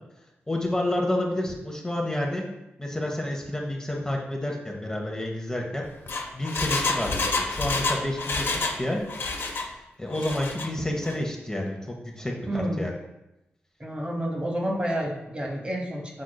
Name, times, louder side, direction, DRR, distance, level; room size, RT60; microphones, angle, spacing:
voice 1, 0.5-2.4 2.8-5.8 6.3-9.0 10.0-12.9, left 1 dB, 15° left, 0 dB, 0.8 m, -29 dB
Engine, 5.8-8.8 9.1-9.7 10.1-10.7 11.0-11.1, left 3 dB, 55° left, 0.6 m, -28 dB
voice 2, 12.5-12.8 13.8-16.2, right 1 dB, 25° right, 0 dB, 1.0 m, -29 dB
6.2 x 3.6 x 2.2 m, 0.94 s
cardioid pair, 45°, 5 cm